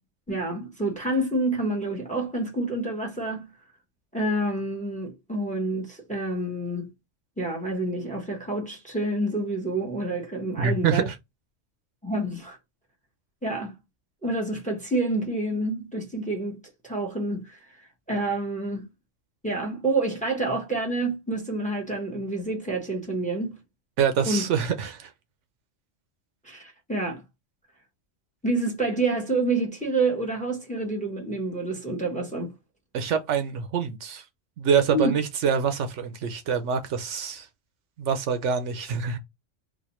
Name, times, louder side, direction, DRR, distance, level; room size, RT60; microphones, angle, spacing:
voice 1, 0.3-3.5 4.1-6.9 7.4-11.1 12.0-12.6 13.4-13.7 14.2-17.6 18.1-18.9 19.4-23.6 24.2-24.4 26.4-27.2 28.4-32.5 34.9-35.1, right 2 dB, 5° left, 0.9 m, -28 dB
voice 2, 10.6-11.1 24.0-25.1 32.9-34.2 34.6-37.5 38.0-39.2, right 7 dB, 75° right, 0.9 m, -25 dB
4.1 x 2.5 x 3.0 m
omnidirectional pair, 1.3 m